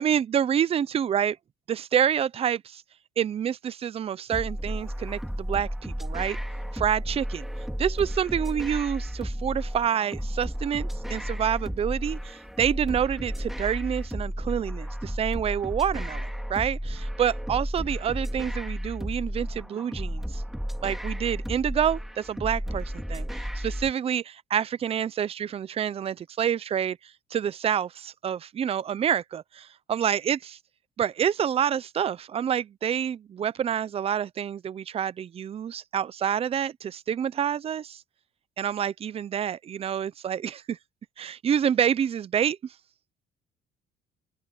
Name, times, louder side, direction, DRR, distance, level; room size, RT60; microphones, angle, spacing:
voice 1, 0.0-1.4 1.7-2.8 3.2-6.4 6.7-7.5 7.8-20.4 20.8-27.0 27.3-30.6 31.0-38.0 38.6-40.8 41.2-42.6, right 9 dB, 35° right, 0.6 m, -28 dB
sound 1, 4.3-23.9, equal, ahead, 3.7 m, -33 dB
open air
cardioid pair, 110°, 17 cm